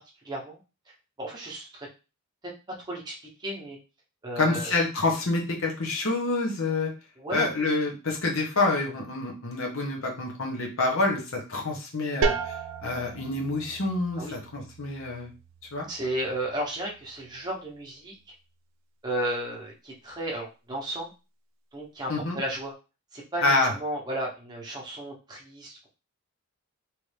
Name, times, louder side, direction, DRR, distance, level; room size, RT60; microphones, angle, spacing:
voice 1, 0.2-0.6 1.2-1.9 2.9-3.8 4.2-4.8 7.2-7.5 14.2-14.3 15.9-18.1 19.0-21.1 21.7-22.7 23.1-25.9, right 1 dB, 20° right, -2 dB, 0.9 m, -34 dB
voice 2, 4.4-6.9 7.3-15.3 15.7-15.8 22.1-22.4 23.4-23.7, left 2 dB, 65° left, 0 dB, 1.0 m, -27 dB
sound 1, 12.2-17.7, right 4 dB, 60° right, 0.4 m, -35 dB
3.0 x 2.6 x 3.2 m, 0.31 s
head